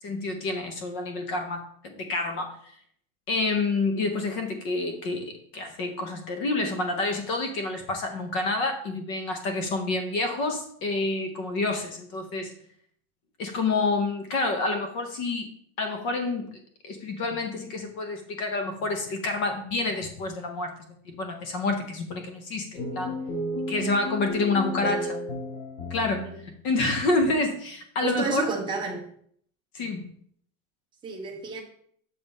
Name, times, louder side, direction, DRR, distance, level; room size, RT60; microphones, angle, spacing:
voice 1, 0.0-2.5 3.3-12.5 13.4-15.5 15.8-16.5 16.8-20.7 21.1-23.2 23.7-25.0 25.9-28.5 29.7-30.0, left 3 dB, 30° left, 5 dB, 0.7 m, -28 dB
sound 1, 22.7-26.5, left 1 dB, 85° left, 2.9 m, -33 dB
voice 2, 28.0-29.0 31.0-31.6, right 4 dB, 10° right, -1 dB, 0.9 m, -31 dB
6.8 x 5.3 x 4.0 m, 0.63 s
supercardioid pair, 180°, 40 cm